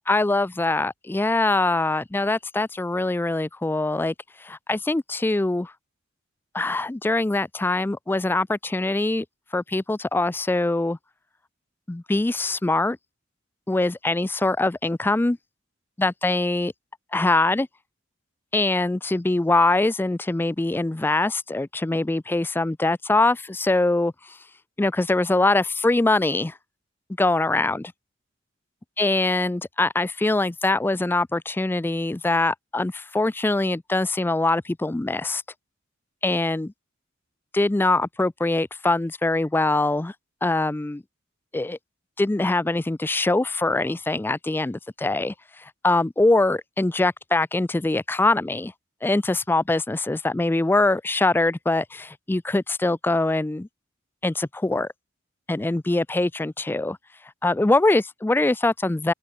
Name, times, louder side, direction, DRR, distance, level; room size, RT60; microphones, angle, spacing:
voice 1, 0.1-4.1 4.4-5.7 6.5-9.3 9.5-11.0 11.9-13.0 13.7-15.4 16.0-16.7 17.1-17.7 18.5-24.4 24.8-26.6 27.2-27.9 29.0-35.4 36.2-36.7 37.5-40.1 40.4-41.0 41.5-41.8 42.2-48.7 49.0-53.7 54.2-54.9 55.5-57.0 57.4-59.1, left 2 dB, 10° left, 0.3 m, -23 dB
open air
head